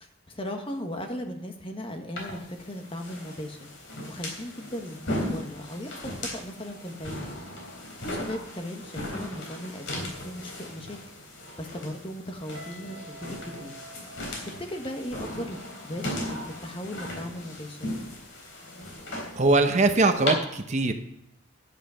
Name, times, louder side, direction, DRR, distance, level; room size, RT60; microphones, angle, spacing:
voice 1, 0.0-3.7 4.1-7.3 8.0-11.0 11.6-13.7 14.4-16.0 16.3-17.9, equal, 30° left, 4 dB, 1.3 m, -37 dB
sound 1, 2.2-20.3, left 1 dB, 80° left, 3.6 m, -37 dB
Guitar, 12.5-15.4, right 1 dB, 80° right, 1.3 m, -48 dB
voice 2, 19.4-20.9, right 3 dB, 35° right, 7 dB, 0.8 m, -21 dB
10.5 x 8.0 x 5.7 m, 0.81 s
head